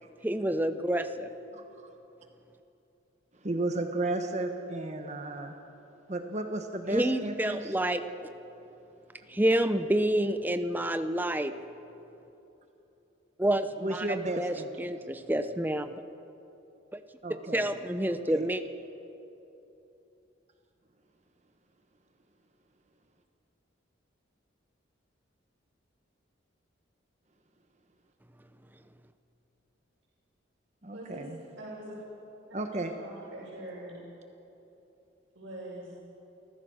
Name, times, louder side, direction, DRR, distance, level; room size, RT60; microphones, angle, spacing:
voice 1, 0.2-1.3 6.9-8.0 9.3-11.5 13.4-15.9 16.9-17.0 17.5-18.6, right 1 dB, 10° right, 9 dB, 0.8 m, -28 dB
voice 2, 3.4-5.5 6.1-7.7 13.8-14.9 17.2-17.8 18.1-18.5 30.8-31.4 32.5-32.9, right 2 dB, 35° right, 5 dB, 1.2 m, -34 dB
voice 3, 30.9-31.3 31.6-32.0 32.6-33.9 35.3-36.0, right 1 dB, 85° right, -9 dB, 6.4 m, -43 dB
29.0 x 15.0 x 6.4 m, 3.0 s
head